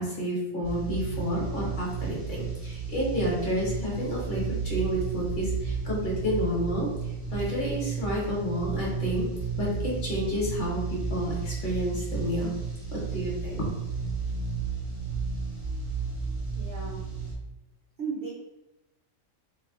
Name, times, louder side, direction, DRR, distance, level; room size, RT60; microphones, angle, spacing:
voice 1, 0.0-6.9 7.3-9.3 9.6-12.5 12.9-13.7, equal, 45° left, -4 dB, 0.9 m, -30 dB
sound 1, 0.6-17.3, right 5 dB, 15° right, 0.6 m, -33 dB
voice 2, 16.5-17.1 18.0-18.3, right 5 dB, 55° right, -7 dB, 0.9 m, -35 dB
2.4 x 2.2 x 3.5 m, 0.97 s
omnidirectional pair, 1.4 m